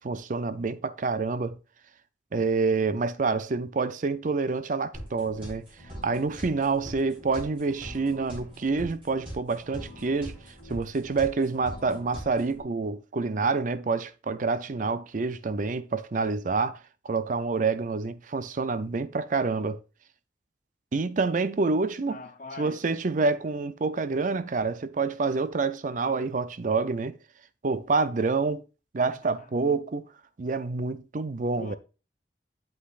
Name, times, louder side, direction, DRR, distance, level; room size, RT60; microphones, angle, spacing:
voice 1, 0.0-1.6 2.3-5.7 6.0-10.4 10.7-16.8 17.0-19.8 20.9-22.2 22.6-27.2 27.6-28.6 28.9-30.1 30.4-31.8, right 4 dB, 45° right, 0.5 m, -27 dB
sound 1, 4.9-12.6, equal, 30° right, 4.1 m, -42 dB
voice 2, 22.1-22.9 29.0-29.5 31.6-31.8, left 3 dB, 45° left, 0.8 m, -43 dB
8.4 x 7.9 x 2.4 m
head